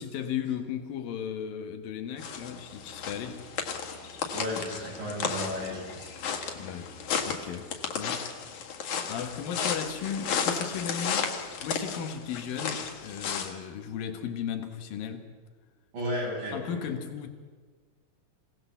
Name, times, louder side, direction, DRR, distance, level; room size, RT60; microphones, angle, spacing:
voice 1, 0.0-3.5 6.5-6.9 7.3-8.3 9.0-11.4 11.6-15.3 16.5-17.3, left 8 dB, 90° left, 3.2 m, -35 dB
sound 1, 2.2-13.5, left 6 dB, 65° left, 3.0 m, -34 dB
voice 2, 4.3-6.1 15.9-16.9, left 1 dB, 85° right, 8.9 m, -34 dB
27.0 x 17.5 x 7.2 m
omnidirectional pair, 3.9 m